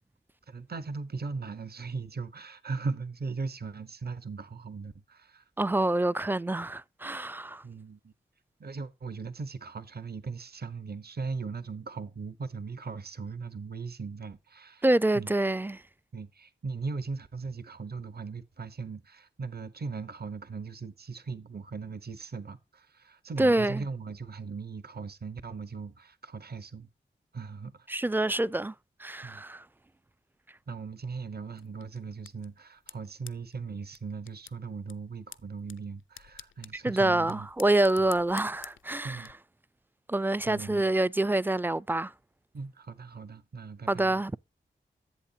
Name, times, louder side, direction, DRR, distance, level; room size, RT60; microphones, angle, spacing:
voice 1, 0.5-5.4 7.6-8.1 8.6-14.8 15.1-15.3 16.1-26.9 27.3-28.0 29.2-29.4 30.7-37.5 39.0-39.3 40.5-40.8 42.5-44.2, right 4 dB, 55° right, 1.0 m, -38 dB
voice 2, 5.6-7.6 14.8-15.8 23.4-23.8 27.9-28.7 29.0-29.6 36.8-39.3 40.1-42.1 43.9-44.4, right 2 dB, 10° right, 0.4 m, -26 dB
sound 1, 31.5-39.3, left 9 dB, 85° left, 0.5 m, -52 dB
11.0 x 8.0 x 2.8 m
cardioid pair, 40°, 20 cm